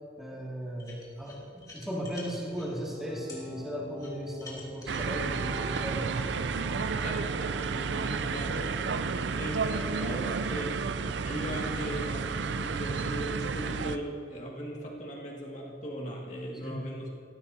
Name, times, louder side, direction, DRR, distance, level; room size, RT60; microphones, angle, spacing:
voice 1, 0.2-6.3 16.6-16.9, equal, ahead, -5 dB, 2.4 m, -36 dB
sound 1, 0.8-2.7 3.3-3.4 4.0-6.4, left 3 dB, 20° left, 2.7 m, -48 dB
sound 2, 2.9-11.5, right 1 dB, 30° right, 3.9 m, -47 dB
sound 3, 4.9-14.0, right 5 dB, 75° right, 0.5 m, -31 dB
voice 2, 7.0-8.7 9.0-10.8 11.2-17.1, equal, 40° left, -3 dB, 2.2 m, -38 dB
19.0 x 15.0 x 2.9 m, 2.4 s
head